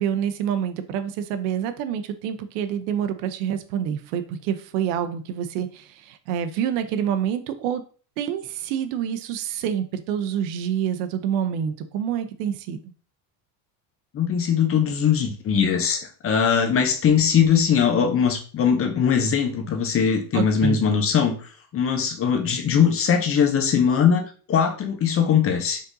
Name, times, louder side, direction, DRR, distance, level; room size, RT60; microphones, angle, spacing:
voice 1, 0.0-7.8 8.2-12.8 20.3-20.8, right 9 dB, 75° right, 8 dB, 0.7 m, -27 dB
voice 2, 14.1-21.4 21.7-25.8, left 7 dB, 30° left, 6 dB, 0.7 m, -21 dB
5.1 x 3.9 x 2.6 m, 0.40 s
cardioid pair, 140°, 48 cm